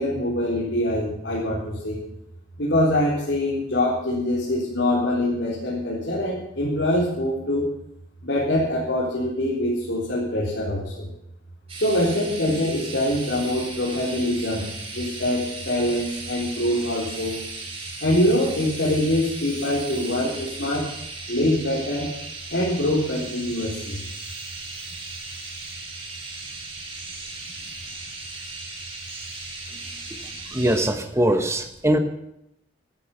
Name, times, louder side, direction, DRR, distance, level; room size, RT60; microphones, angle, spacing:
voice 1, 0.0-2.0 2.6-7.7 8.2-11.1 11.8-17.4 18.0-20.9 21.3-22.1 22.5-24.0, left 1 dB, 70° left, -6 dB, 4.3 m, -24 dB
sound 1, 11.7-30.8, right 3 dB, 30° right, 3.9 m, -37 dB
voice 2, 30.5-32.0, right 1 dB, 15° right, 7 dB, 1.0 m, -21 dB
14.5 x 13.0 x 5.6 m, 0.82 s
head